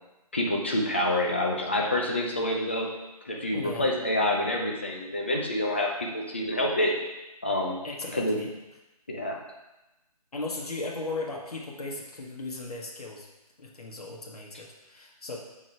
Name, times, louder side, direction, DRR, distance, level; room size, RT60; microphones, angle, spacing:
voice 1, 0.3-2.9 3.2-7.0 7.4-7.8 8.1-8.4 9.1-9.4, left 1 dB, 20° left, -1 dB, 0.6 m, -27 dB
voice 2, 3.5-3.9 7.8-8.5 10.3-13.3 13.6-15.4, left 2 dB, 70° left, -2 dB, 1.6 m, -36 dB
6.8 x 5.0 x 4.5 m, 0.99 s
figure-of-eight pair, 170°, 20 cm